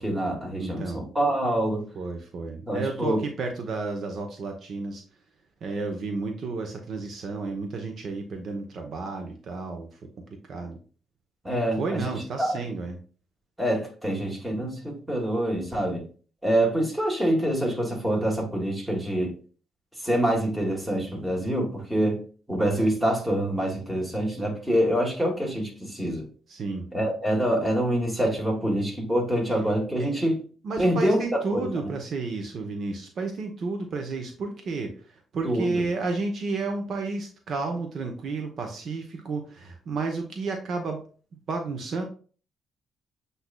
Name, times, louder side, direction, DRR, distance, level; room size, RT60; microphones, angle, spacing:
voice 1, 0.0-1.8 2.7-3.2 11.4-12.6 13.6-16.0 16.4-19.3 20.0-22.2 22.5-26.3 26.9-30.4 30.8-31.2 31.5-31.9 35.4-35.7, right 1 dB, 10° right, -1 dB, 1.7 m, -26 dB
voice 2, 0.6-1.0 1.9-5.0 5.6-9.9 10.5-10.8 11.8-13.0 26.5-26.9 30.0-30.2 30.6-41.0 41.5-42.0, right 3 dB, 60° right, 4 dB, 0.8 m, -31 dB
7.9 x 2.7 x 2.2 m, 0.39 s
cardioid pair, 90°, 0 cm